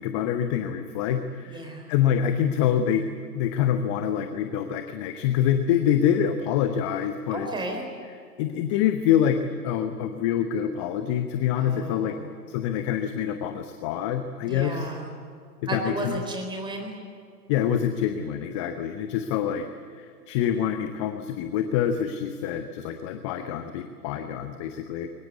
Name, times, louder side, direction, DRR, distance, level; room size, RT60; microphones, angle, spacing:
voice 1, 0.0-3.0 3.3-7.5 8.4-12.2 12.5-14.9 15.7-16.2 17.5-19.7 20.0-25.1, left 9 dB, 20° left, 8 dB, 0.8 m, -26 dB
voice 2, 1.4-1.9 7.3-7.8 11.6-12.3 14.5-15.1 15.6-16.9, right 1 dB, 10° right, 2 dB, 4.3 m, -33 dB
23.0 x 20.0 x 9.4 m, 2.2 s
figure-of-eight pair, 125°, 49 cm